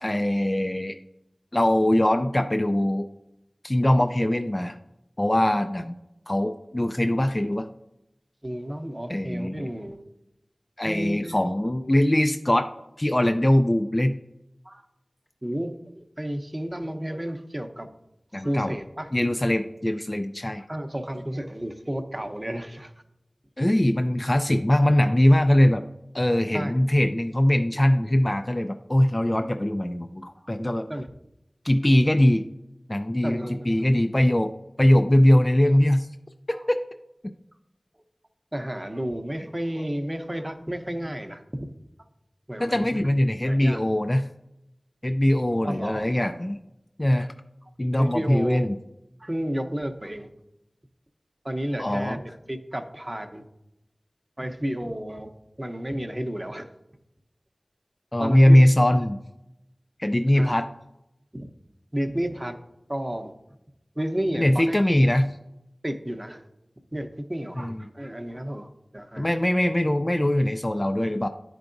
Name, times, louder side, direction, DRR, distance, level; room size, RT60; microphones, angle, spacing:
voice 1, 0.0-1.0 1.5-3.1 3.6-4.8 5.2-5.9 6.3-7.7 9.1-9.7 10.8-12.7 13.0-14.1 18.3-18.8 19.1-20.6 23.6-25.8 26.1-30.9 31.6-32.4 32.9-34.5 34.8-36.1 42.6-44.2 45.0-46.6 47.0-47.3 47.8-48.8 51.8-52.2 58.1-59.2 60.0-60.7 64.3-65.3 67.6-67.8 69.2-71.3, left 1 dB, 30° left, 7 dB, 0.3 m, -21 dB
voice 2, 8.4-10.0 10.8-11.4 14.6-14.8 15.4-17.9 18.4-19.1 20.5-22.9 26.5-26.7 30.9-31.1 33.2-33.9 36.5-36.6 38.5-41.7 42.5-43.0 43.4-43.8 45.6-46.1 48.0-48.7 49.2-50.3 51.4-53.4 54.4-55.3 55.6-56.7 58.2-58.6 60.3-60.6 61.3-61.5 61.9-62.6 62.9-63.3 64.0-64.8 65.8-66.4 66.9-69.3, equal, 25° right, 6 dB, 0.7 m, -32 dB
10.5 x 4.6 x 2.6 m, 0.86 s
wide cardioid pair, 50°, 0 cm